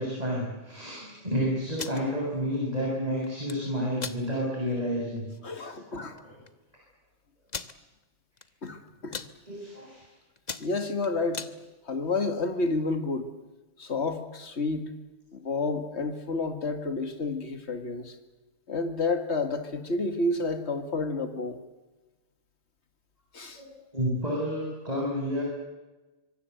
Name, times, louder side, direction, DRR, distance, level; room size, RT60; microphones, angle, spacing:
voice 1, 0.0-5.3 5.9-6.0 9.5-10.0 23.6-23.7 23.9-25.4, equal, 35° right, -2 dB, 7.3 m, -30 dB
sound 1, 1.6-2.0 3.2-3.6 4.0-4.2 4.7-4.8 5.2-5.4 6.2-6.3 6.5-6.6 7.5-7.7 8.4-8.7 8.9-9.3 9.9-10.1 10.4-11.5, left 4 dB, 40° left, 1.2 m, -37 dB
voice 2, 5.4-6.2 8.6-9.2 10.6-11.4 11.8-13.3 13.8-14.9 15.3-18.2 18.7-21.6 23.3-23.6, left 3 dB, 65° left, 7 dB, 2.3 m, -30 dB
25.5 x 24.0 x 8.0 m, 1.1 s
omnidirectional pair, 1.2 m